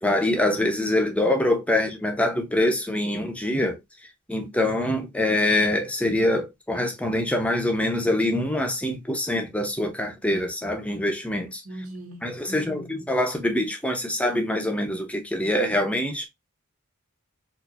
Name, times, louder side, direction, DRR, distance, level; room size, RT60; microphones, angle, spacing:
voice 1, 0.0-3.8 4.3-11.6 12.2-16.3, left 1 dB, 5° left, 0.8 m, -24 dB
voice 2, 11.6-13.0, right 1 dB, 90° right, 1.7 m, -40 dB
4.3 x 2.7 x 2.4 m
head